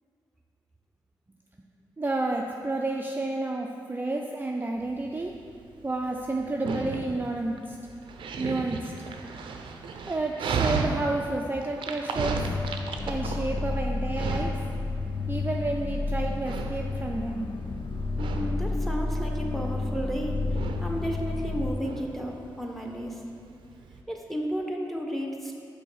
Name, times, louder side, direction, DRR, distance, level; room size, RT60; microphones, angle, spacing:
voice 1, 2.0-5.3 5.8-7.8 8.4-8.9 10.0-12.4 13.0-14.5 15.3-17.5, right 2 dB, 25° right, 1 dB, 0.4 m, -30 dB
Dog, 4.8-24.0, right 4 dB, 85° right, 0.5 m, -35 dB
sound 1, 12.2-21.7, left 3 dB, 65° left, 0.5 m, -31 dB
voice 2, 18.2-23.2 24.1-25.5, equal, 5° left, 1 dB, 1.0 m, -33 dB
5.6 x 3.9 x 5.6 m, 2.4 s
cardioid pair, 50°, 8 cm